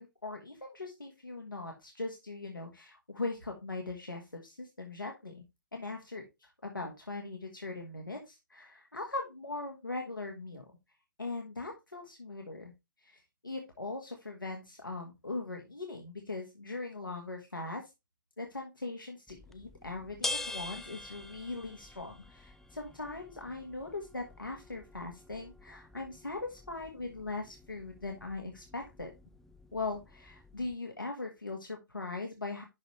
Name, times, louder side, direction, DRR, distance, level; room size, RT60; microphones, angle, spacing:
voice 1, 0.0-5.4 5.7-10.7 11.2-12.7 13.0-17.9 18.4-29.1 29.7-32.6, left 3 dB, 80° left, 2 dB, 1.6 m, -40 dB
sound 1, 19.3-30.7, left 2 dB, 5° left, 0.4 m, -45 dB
11.5 x 4.0 x 3.2 m, 0.22 s
figure-of-eight pair, 125°, 11 cm